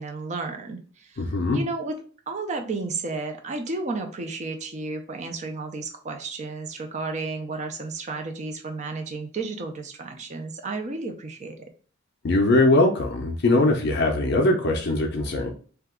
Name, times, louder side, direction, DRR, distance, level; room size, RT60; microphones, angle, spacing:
voice 1, 0.0-1.9 2.3-11.6, right 3 dB, 35° right, 4 dB, 0.4 m, -32 dB
voice 2, 1.2-1.6 12.2-15.5, left 2 dB, 55° left, 1 dB, 0.4 m, -21 dB
2.8 x 2.3 x 3.5 m, 0.41 s
head